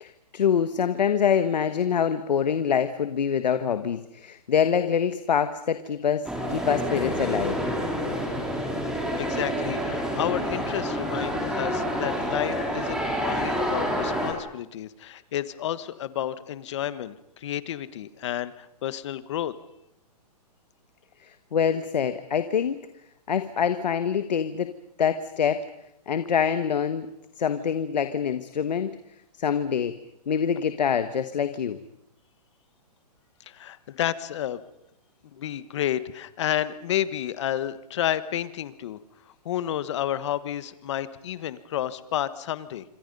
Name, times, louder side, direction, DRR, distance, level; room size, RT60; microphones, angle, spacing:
voice 1, 0.0-7.6 21.5-22.8 23.3-24.7 25.0-25.6 26.1-27.1 27.4-28.9 29.4-29.9 30.3-31.8, left 7 dB, 90° left, 10 dB, 1.4 m, -25 dB
sound 1, 6.2-14.3, equal, 5° right, 3.0 m, -28 dB
voice 2, 9.2-19.5 33.5-34.6 35.3-39.0 39.4-42.8, left 11 dB, 45° left, 14 dB, 1.3 m, -30 dB
27.0 x 25.5 x 5.4 m, 0.82 s
hypercardioid pair, 165°, 21 cm